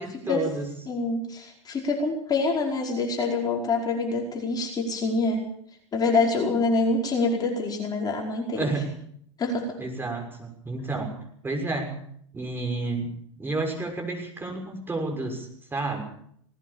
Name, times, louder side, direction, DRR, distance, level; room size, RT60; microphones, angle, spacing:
voice 1, 0.0-0.7 8.5-8.9 9.8-11.1 11.4-11.9 12.3-13.1 13.4-16.0, right 2 dB, 15° right, 2 dB, 6.4 m, -30 dB
voice 2, 0.9-5.4 5.9-8.7 9.4-9.7, left 3 dB, 25° left, 0 dB, 4.9 m, -26 dB
19.5 x 18.5 x 7.2 m, 0.67 s
hypercardioid pair, 110°, 15 cm